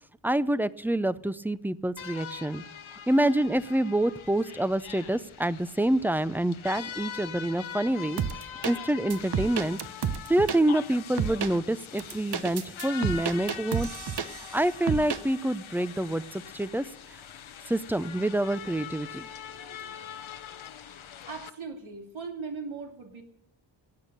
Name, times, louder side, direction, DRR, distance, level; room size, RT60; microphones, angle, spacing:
voice 1, 0.2-2.6 3.1-8.2 8.6-9.8 10.3-13.9 14.5-16.8 17.7-19.3, right 1 dB, 5° right, 16 dB, 0.5 m, -27 dB
sound 1, 2.0-21.5, left 8 dB, 85° left, 1.0 m, -43 dB
sound 2, 8.2-8.7 9.1-10.6 11.2-11.5 12.0-14.6 14.9-15.2, right 7 dB, 55° right, 0.9 m, -30 dB
voice 2, 21.3-23.2, right 4 dB, 85° right, 3 dB, 2.5 m, -39 dB
17.5 x 8.9 x 6.7 m, 0.79 s
wide cardioid pair, 85°, 47 cm